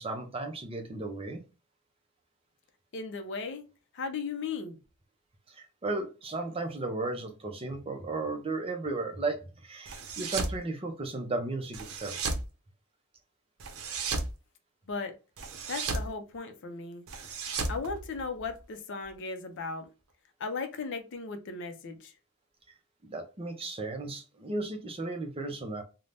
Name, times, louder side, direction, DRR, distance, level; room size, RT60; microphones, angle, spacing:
voice 1, 0.0-1.4 5.5-12.2 23.0-25.8, right 2 dB, 25° right, 0.6 m, -35 dB
voice 2, 2.9-3.6 3.9-4.8 14.9-15.1 15.7-17.1 17.7-19.9 20.4-22.1, left 4 dB, 55° left, 0.5 m, -36 dB
sound 1, 9.9-10.6 11.7-12.5 13.6-14.3 15.4-16.1 17.1-18.6, right 3 dB, 70° right, 0.6 m, -34 dB
2.6 x 2.1 x 3.2 m
head